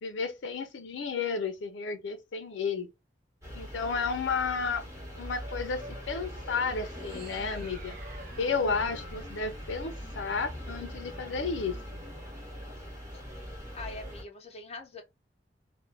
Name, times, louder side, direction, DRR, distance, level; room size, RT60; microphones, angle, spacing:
voice 1, 0.0-2.9 3.5-4.8 5.2-8.0 8.4-11.8, left 5 dB, 80° left, 0.5 m, -32 dB
sound 1, 3.4-14.2, equal, 15° right, 1.0 m, -42 dB
sound 2, 6.2-10.5, right 4 dB, 55° right, 0.6 m, -53 dB
sound 3, 7.9-12.8, equal, 85° right, 0.8 m, -54 dB
voice 2, 13.7-15.0, left 2 dB, 35° left, 0.6 m, -43 dB
2.4 x 2.1 x 3.2 m
head